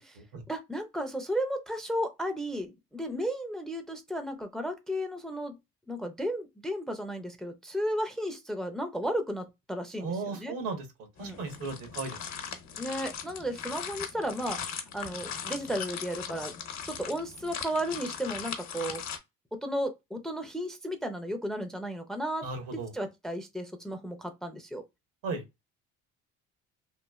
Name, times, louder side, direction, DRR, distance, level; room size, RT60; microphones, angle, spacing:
voice 1, 0.5-5.6 5.9-10.5 11.2-11.4 12.8-14.6 14.9-16.5 16.9-19.0 19.6-24.8, equal, ahead, 0.4 m, -34 dB
voice 2, 10.0-10.8 11.2-12.5 22.4-22.9 25.2-25.4, right 4 dB, 85° right, 1.2 m, -36 dB
sound 1, 11.2-19.2, left 7 dB, 60° left, 0.9 m, -39 dB
3.1 x 2.3 x 2.3 m
cardioid pair, 100°, 31 cm